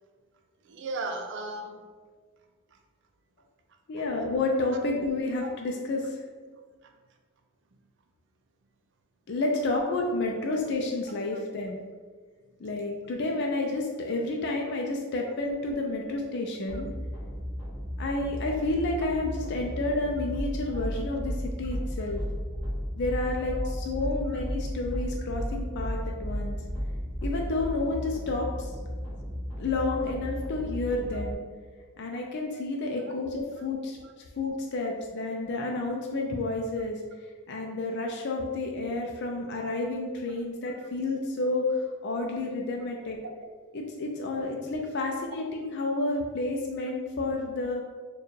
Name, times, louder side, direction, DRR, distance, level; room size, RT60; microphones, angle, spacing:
voice 1, 0.6-1.9 5.4-5.5 6.8-6.9 16.7-16.8 20.7-20.8 23.6-23.7 24.3-24.4 31.1-31.3 34.0-34.1 40.8-40.9 43.6-43.7, right 2 dB, 60° right, 4 dB, 0.4 m, -37 dB
voice 2, 3.9-6.1 9.3-11.8 12.6-16.9 18.0-22.2 23.0-26.6 27.2-28.7 29.6-31.4 32.0-34.0 34.4-37.0 37.5-43.2 43.7-47.8, left 2 dB, 55° left, 0 dB, 0.4 m, -30 dB
sound 1, 16.7-31.3, equal, 5° left, 1.5 m, -34 dB
4.4 x 2.3 x 3.1 m, 1.5 s
head